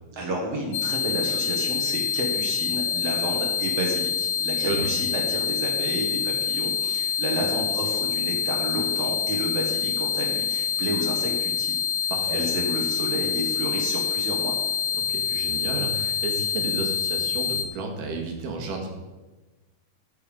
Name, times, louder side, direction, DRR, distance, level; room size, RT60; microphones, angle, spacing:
voice 1, 0.1-14.5, right 1 dB, 50° right, 0 dB, 2.5 m, -31 dB
sound 1, 0.7-17.7, left 7 dB, 85° left, 2.3 m, -26 dB
voice 2, 4.6-4.9 12.1-12.5 14.9-18.9, right 3 dB, 80° right, 2 dB, 3.3 m, -32 dB
14.5 x 6.9 x 5.3 m, 1.2 s
omnidirectional pair, 3.8 m